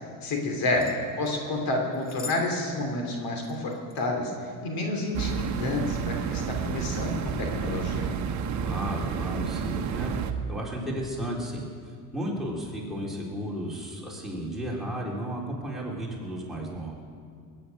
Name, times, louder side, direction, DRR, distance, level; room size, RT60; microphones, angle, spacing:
voice 1, 0.2-0.8 1.2-8.1, left 2 dB, 55° left, 2 dB, 2.9 m, -29 dB
sound 1, 0.8-1.4 1.9-2.5 2.7-2.8 3.4-4.0 4.9-5.1 5.7-5.9, left 4 dB, 20° left, 1.4 m, -43 dB
sound 2, 5.1-10.3, right 7 dB, 40° right, 1.2 m, -30 dB
voice 2, 8.6-10.2 10.5-11.6 12.1-17.0, equal, ahead, -3 dB, 3.8 m, -33 dB
20.5 x 9.8 x 6.4 m, 2.1 s
supercardioid pair, 110°, 43 cm